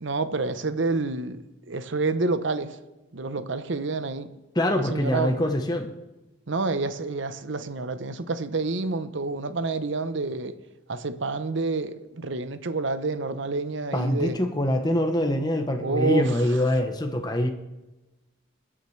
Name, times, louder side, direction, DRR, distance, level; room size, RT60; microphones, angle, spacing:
voice 1, 0.0-2.8 3.1-4.3 4.7-5.4 6.5-10.6 10.9-14.4 15.8-16.6, right 3 dB, 65° right, 0.8 m, -28 dB
voice 2, 4.5-5.9 13.9-17.5, left 1 dB, 20° left, 0.9 m, -24 dB
21.5 x 9.9 x 3.2 m
head